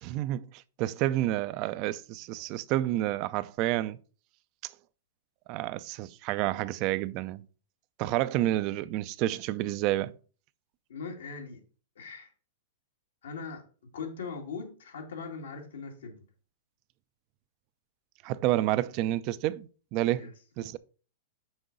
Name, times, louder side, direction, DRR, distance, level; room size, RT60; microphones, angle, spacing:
voice 1, 0.0-4.0 4.6-4.7 5.5-7.4 8.0-10.1 18.2-20.3 20.6-20.8, right 15 dB, 40° right, 0.4 m, -29 dB
voice 2, 10.9-11.6 12.0-12.3 13.2-13.6 13.9-16.2 20.2-20.3, left 5 dB, 90° left, 2.1 m, -40 dB
6.2 x 4.7 x 5.2 m
hypercardioid pair, 145°, 0 cm